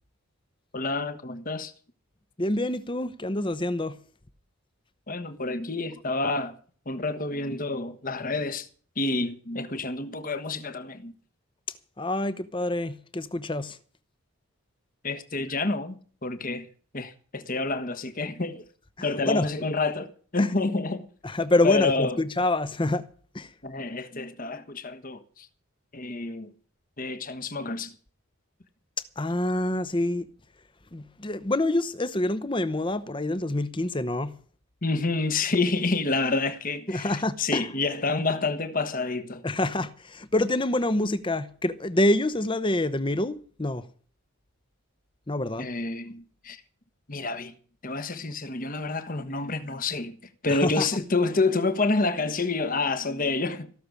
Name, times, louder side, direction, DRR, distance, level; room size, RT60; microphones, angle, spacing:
voice 1, 0.7-1.7 5.1-6.6 6.9-8.7 9.0-11.1 15.0-16.0 16.2-16.7 16.9-18.6 19.0-21.1 21.6-22.2 23.6-25.5 25.9-26.5 27.0-27.9 34.8-39.4 45.6-46.6 47.1-47.5 47.8-50.2 50.4-53.7, left 3 dB, 40° left, 1.3 m, -28 dB
voice 2, 2.4-4.0 12.0-13.8 19.3-19.5 20.4-20.5 21.2-23.1 23.3-23.5 29.2-30.2 30.9-34.3 36.9-37.7 39.4-43.8 45.3-45.7 50.5-50.9, left 1 dB, 25° left, 0.9 m, -26 dB
16.5 x 6.8 x 9.7 m
head